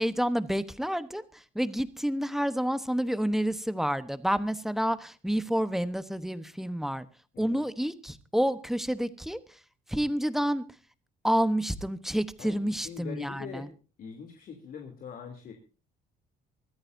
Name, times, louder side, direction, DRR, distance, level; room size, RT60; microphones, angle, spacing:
voice 1, 0.0-7.1 7.4-9.6 9.9-10.7 11.2-13.7, equal, ahead, 12 dB, 1.1 m, -29 dB
voice 2, 12.4-13.7 14.0-15.5, left 7 dB, 55° left, 3 dB, 3.0 m, -43 dB
23.5 x 14.5 x 2.7 m, 0.36 s
cardioid pair, 110°, 17 cm